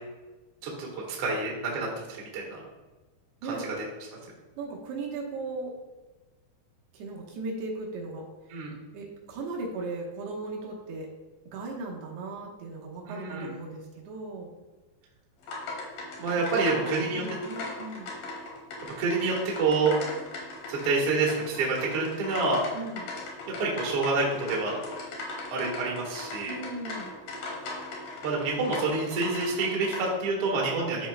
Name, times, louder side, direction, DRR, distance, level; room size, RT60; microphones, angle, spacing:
voice 1, 1.2-2.6 3.5-3.6 8.5-8.8 13.1-13.5 16.2-17.2 19.0-19.9 20.7-22.6 23.6-24.8 25.5-26.6 28.2-31.1, right 3 dB, 55° right, -3 dB, 1.7 m, -27 dB
voice 2, 4.6-5.7 6.9-8.3 8.9-11.1 11.5-14.5 16.3-18.2 22.7-23.1 26.5-27.1, right 3 dB, 80° right, -2 dB, 3.1 m, -37 dB
sound 1, 15.4-30.1, left 2 dB, 70° left, 2.9 m, -39 dB
12.5 x 4.4 x 2.2 m, 1.2 s
omnidirectional pair, 4.7 m